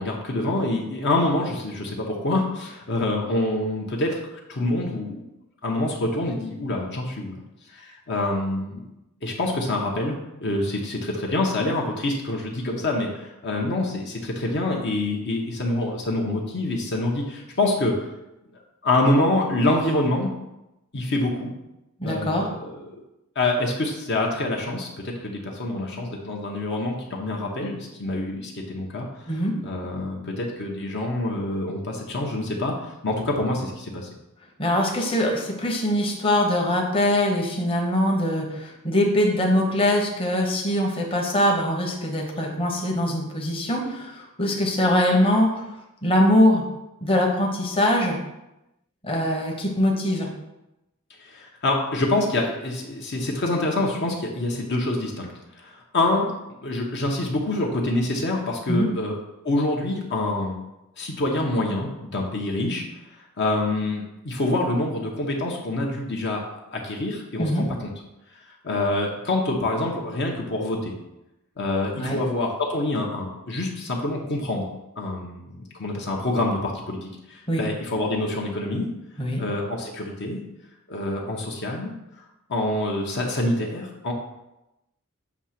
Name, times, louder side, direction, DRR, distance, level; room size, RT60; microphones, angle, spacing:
voice 1, 0.0-5.2 5.6-7.4 7.7-8.9 9.2-17.9 18.8-20.3 20.9-21.5 22.0-23.0 23.4-34.1 51.2-56.3 56.6-59.2 59.4-60.6 61.0-62.8 63.4-67.9 68.3-68.4 68.6-70.9 71.6-74.7 75.0-78.9 79.4-80.4 80.9-81.9 82.5-84.1, left 2 dB, 50° left, -1 dB, 0.8 m, -26 dB
voice 2, 22.0-22.5 29.3-29.5 34.6-45.6 46.0-46.6 47.0-48.2 49.0-50.3 58.7-58.9 67.4-67.6 72.0-72.2 77.5-77.6 79.2-79.4, left 1 dB, 25° left, -1 dB, 0.9 m, -22 dB
7.1 x 2.8 x 5.8 m, 0.94 s
head